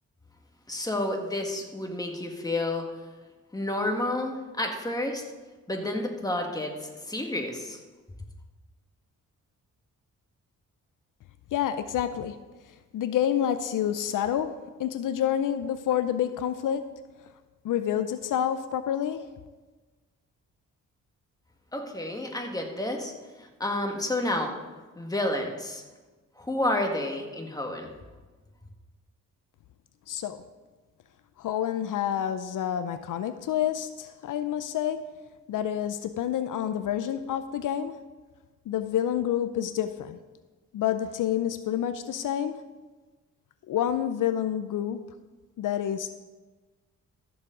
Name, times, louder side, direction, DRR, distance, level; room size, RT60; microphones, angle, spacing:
voice 1, 0.7-2.9 3.5-5.2 5.7-7.8 21.7-23.1 23.4-24.5 25.0-25.8 26.4-27.9, left 1 dB, 10° left, 2 dB, 1.7 m, -30 dB
voice 2, 11.5-12.4 12.7-14.5 14.8-16.9 17.6-19.3 30.1-30.4 31.4-35.0 35.5-37.9 38.7-40.2 40.7-42.6 43.7-45.0 45.6-46.1, left 10 dB, 75° left, 11 dB, 0.6 m, -28 dB
14.5 x 7.0 x 3.8 m, 1.3 s
cardioid pair, 70°, 32 cm